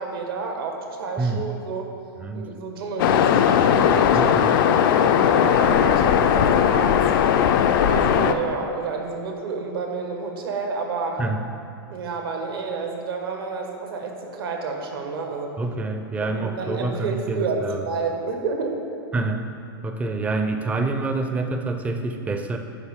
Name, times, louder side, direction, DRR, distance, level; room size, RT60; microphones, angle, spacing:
voice 1, 0.0-1.9 2.3-7.1 7.7-11.2 11.9-15.5 16.2-18.8, right 4 dB, 75° right, 3 dB, 1.1 m, -30 dB
Waves surf, 3.0-8.3, left 9 dB, 60° left, 0.4 m, -18 dB
voice 2, 4.1-4.6 11.2-11.4 15.6-17.8 19.1-19.4 19.8-22.6, right 3 dB, 10° right, 6 dB, 0.4 m, -27 dB
10.5 x 3.9 x 3.6 m, 2.5 s
hypercardioid pair, 125°, 12 cm